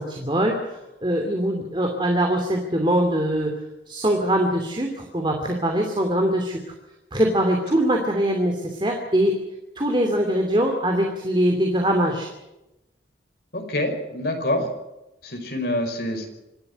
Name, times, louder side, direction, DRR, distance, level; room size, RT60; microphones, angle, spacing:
voice 1, 0.0-3.5 3.9-6.6 7.1-9.4 9.7-12.3, right 1 dB, 25° right, 3 dB, 2.7 m, -22 dB
voice 2, 13.5-14.7 15.2-16.3, left 1 dB, 60° left, 4 dB, 5.3 m, -26 dB
26.0 x 12.5 x 9.9 m, 0.94 s
head